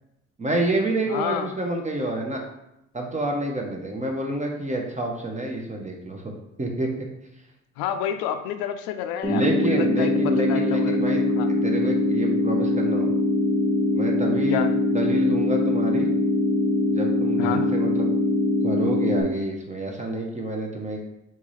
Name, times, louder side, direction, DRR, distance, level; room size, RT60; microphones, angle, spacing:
voice 1, 0.4-2.4 2.9-6.3 6.6-6.9 9.3-13.1 13.9-14.7 14.9-16.1 16.9-18.1 18.6-21.0, right 1 dB, 20° right, 1 dB, 0.7 m, -28 dB
voice 2, 1.1-1.5 7.8-10.1 10.4-10.9 11.2-11.5 14.5-14.7 17.4-17.6, left 9 dB, 65° left, 8 dB, 0.5 m, -29 dB
sound 1, 9.2-19.2, left 2 dB, 10° left, 1.0 m, -22 dB
3.6 x 2.7 x 3.1 m, 0.84 s
hypercardioid pair, 60°, 39 cm